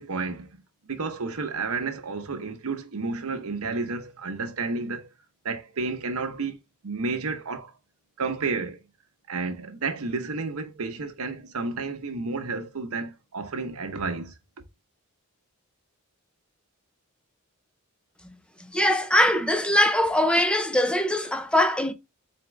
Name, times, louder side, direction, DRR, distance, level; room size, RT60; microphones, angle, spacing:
voice 1, 0.0-5.1 5.4-6.6 6.8-7.7 8.2-8.8 9.3-14.3, right 4 dB, 75° right, 0.8 m, -31 dB
voice 2, 18.7-21.9, left 1 dB, 5° left, 0.5 m, -22 dB
4.2 x 3.5 x 3.1 m
head